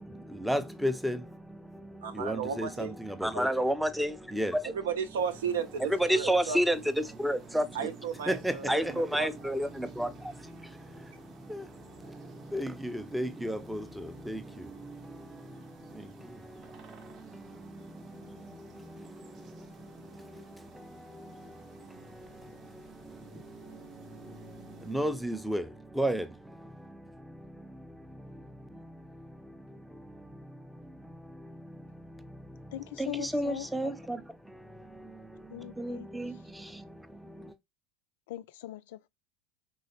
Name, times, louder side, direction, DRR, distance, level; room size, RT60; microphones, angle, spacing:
voice 1, 0.0-4.8 5.9-7.9 8.3-37.5, equal, ahead, 0.4 m, -34 dB
voice 2, 2.0-3.0 4.7-6.8 7.7-9.3, right 7 dB, 85° right, 0.6 m, -34 dB
sound 1, 5.2-25.0, right 4 dB, 40° right, 0.6 m, -52 dB
voice 3, 32.7-33.9 35.5-36.1 36.3-36.4 38.3-39.1, left 14 dB, 75° left, 0.3 m, -41 dB
3.1 x 2.8 x 2.8 m
hypercardioid pair, 105°, 0 cm